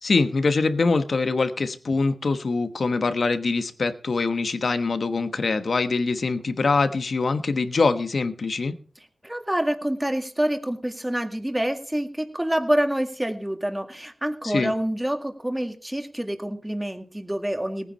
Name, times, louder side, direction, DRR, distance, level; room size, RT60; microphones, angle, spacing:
voice 1, 0.0-8.7 14.4-14.7, left 3 dB, 55° left, 10 dB, 1.2 m, -23 dB
voice 2, 9.2-17.9, right 1 dB, 10° right, 5 dB, 1.9 m, -27 dB
18.5 x 9.7 x 4.4 m, 0.42 s
wide cardioid pair, 105°, 0 cm